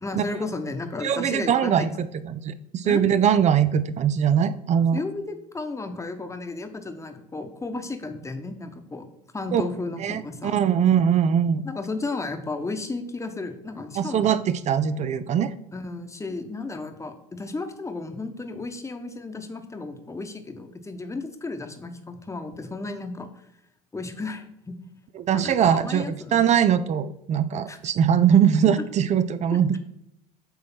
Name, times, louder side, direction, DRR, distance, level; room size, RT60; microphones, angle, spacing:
voice 1, 0.0-1.9 2.8-3.0 4.9-9.1 9.3-10.6 11.6-14.3 15.7-23.3 23.9-24.7 25.3-26.4 27.7-27.8, left 3 dB, 15° left, 7 dB, 1.1 m, -33 dB
voice 2, 1.0-5.0 9.5-9.6 10.0-11.6 14.0-15.5 25.2-29.8, right 8 dB, 40° right, 13 dB, 0.5 m, -21 dB
8.1 x 3.1 x 6.0 m, 0.79 s
hypercardioid pair, 75°, 19 cm